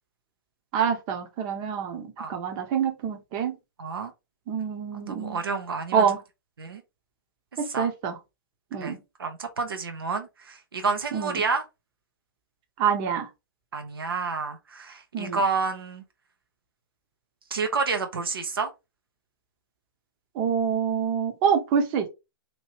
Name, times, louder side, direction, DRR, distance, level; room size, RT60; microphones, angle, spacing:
voice 1, 0.7-3.5 4.5-5.4 5.9-6.2 7.6-8.2 8.7-9.0 11.1-11.4 12.8-13.3 15.1-15.4 20.4-22.1, right 7 dB, 35° right, 0.8 m, -26 dB
voice 2, 3.8-4.1 4.9-6.1 6.6-6.8 7.7-7.9 8.8-11.6 13.7-16.0 17.5-18.7, right 4 dB, 75° right, 0.7 m, -29 dB
3.0 x 2.6 x 2.9 m
hypercardioid pair, 125°, 12 cm